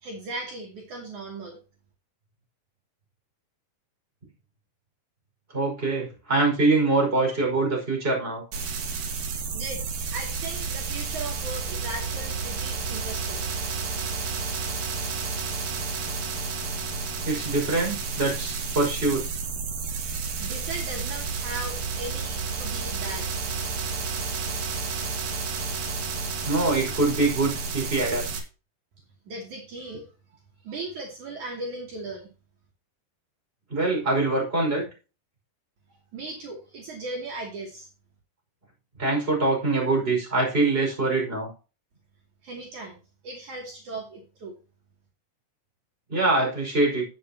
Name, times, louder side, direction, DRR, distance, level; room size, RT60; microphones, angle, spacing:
voice 1, 0.0-1.6 9.5-9.8 10.1-13.5 20.4-23.3 29.3-30.1 30.3-32.3 36.1-37.9 42.4-43.0 43.2-44.5, right 2 dB, 60° right, 0 dB, 4.0 m, -37 dB
voice 2, 5.5-8.4 17.2-19.3 26.5-28.3 33.7-34.9 39.0-41.5 46.1-47.1, right 2 dB, 15° right, 0 dB, 5.5 m, -24 dB
sound 1, 8.5-28.4, right 4 dB, 75° right, 3.9 m, -31 dB
12.5 x 9.5 x 2.9 m, 0.32 s
omnidirectional pair, 4.0 m